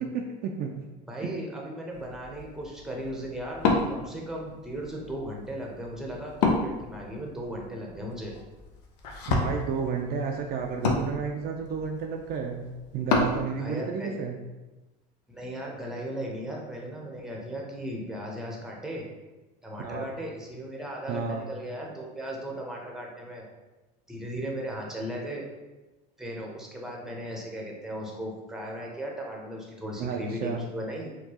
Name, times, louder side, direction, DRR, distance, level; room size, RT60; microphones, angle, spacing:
voice 1, 0.1-0.7 1.2-1.3 9.3-12.6 12.9-14.4 19.8-20.1 21.1-21.4 30.0-30.6, right 5 dB, 50° right, 2 dB, 0.4 m, -31 dB
voice 2, 1.1-8.3 13.6-14.2 15.3-19.0 19.6-23.4 24.1-25.5 26.2-31.1, equal, ahead, -2 dB, 0.8 m, -36 dB
Wood, 1.9-13.4, left 3 dB, 90° left, 0.6 m, -32 dB
4.4 x 2.3 x 2.8 m, 1.1 s
supercardioid pair, 105°, 21 cm